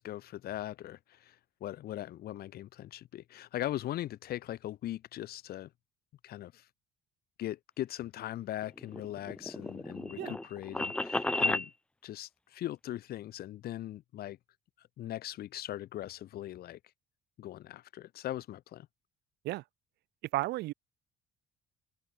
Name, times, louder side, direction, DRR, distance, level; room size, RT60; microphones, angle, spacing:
voice 1, 0.0-5.7 6.2-6.7 7.4-11.7 12.0-14.4 14.8-16.8 17.4-18.9, left 13 dB, 65° left, 1.7 m, -40 dB
sound 1, 8.6-11.7, left 1 dB, 5° left, 0.5 m, -33 dB
voice 2, 20.3-20.7, right 18 dB, 80° right, 1.0 m, -33 dB
cardioid pair, 110°, 17 cm